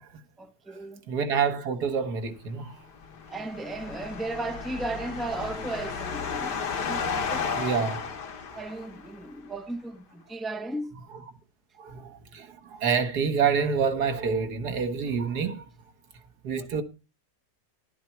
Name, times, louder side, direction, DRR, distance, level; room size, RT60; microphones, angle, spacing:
voice 1, 0.4-1.0 3.3-7.6 8.5-10.9 16.6-16.7, right 2 dB, ahead, 0.5 m, -35 dB
voice 2, 1.1-2.8 7.6-8.0 11.8-15.7 16.4-16.8, right 6 dB, 60° right, 1.8 m, -27 dB
sound 1, 2.9-9.2, left 5 dB, 65° left, 1.9 m, -33 dB
11.5 x 10.5 x 4.6 m
omnidirectional pair, 1.9 m